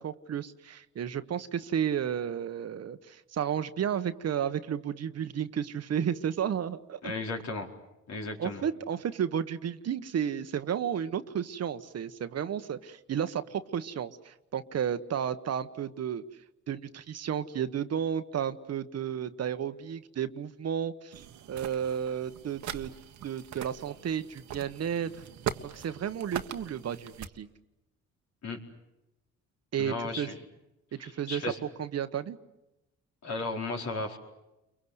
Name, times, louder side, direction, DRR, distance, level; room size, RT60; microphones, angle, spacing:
voice 1, 0.0-7.1 8.4-16.2 16.7-22.9 23.2-25.1 25.7-27.5 29.7-30.3 30.9-31.4 31.8-32.4, right 8 dB, 55° right, 11 dB, 1.3 m, -32 dB
voice 2, 7.0-7.7 8.1-8.6 28.4-28.6 29.8-30.4 31.0-31.6 33.2-34.2, left 3 dB, 65° left, 1 dB, 4.6 m, -35 dB
sound 1, 21.1-27.3, right 10 dB, 70° right, 1.5 m, -41 dB
30.0 x 23.5 x 8.1 m, 0.95 s
cardioid pair, 90°, 30 cm